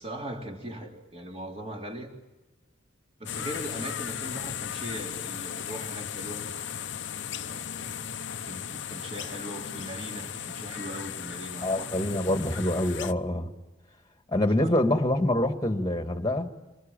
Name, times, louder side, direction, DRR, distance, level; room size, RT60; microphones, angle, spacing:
voice 1, 0.0-2.1 3.2-6.4 7.4-8.0 8.5-12.2 14.6-14.9, right 1 dB, 30° right, 1 dB, 3.8 m, -39 dB
sound 1, 3.3-13.1, left 8 dB, 60° left, 0.8 m, -36 dB
voice 2, 11.6-13.5 14.3-16.5, left 1 dB, 20° left, 6 dB, 1.8 m, -25 dB
26.0 x 21.0 x 9.0 m, 1.1 s
head